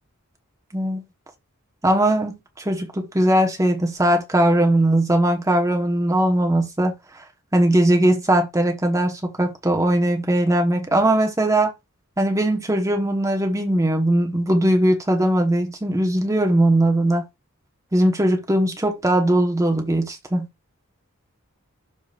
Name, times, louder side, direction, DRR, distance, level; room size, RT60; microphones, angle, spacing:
voice 1, 1.8-7.0 7.5-11.7 12.2-17.2 17.9-20.5, right 1 dB, 15° right, 1.1 m, -20 dB
12.0 x 4.0 x 2.4 m
head